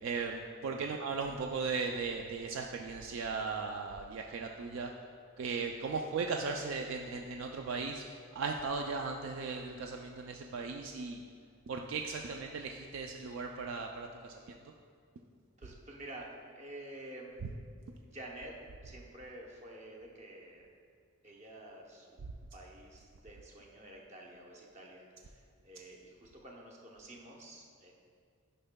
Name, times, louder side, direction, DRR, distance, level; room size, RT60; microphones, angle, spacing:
voice 1, 0.0-4.9 5.4-8.0 8.3-11.2 11.7-14.6, right 4 dB, 60° right, 2 dB, 0.3 m, -37 dB
voice 2, 15.6-17.4 18.1-18.5 18.8-20.7 21.2-27.9, right 1 dB, 30° right, -1 dB, 0.7 m, -50 dB
9.9 x 5.4 x 2.2 m, 2.1 s
head